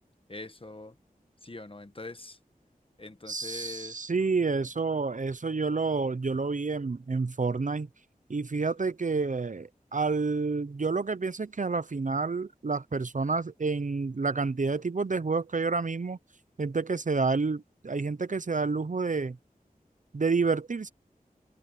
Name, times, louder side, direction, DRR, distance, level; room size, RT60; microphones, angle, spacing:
voice 1, 0.3-1.0 1.4-2.4 3.0-4.1, left 2 dB, 35° left, 1.2 m, -43 dB
voice 2, 3.3-7.9 8.3-16.2 16.6-19.4 20.1-20.9, right 4 dB, 55° right, 0.7 m, -29 dB
wide cardioid pair, 65°, 15 cm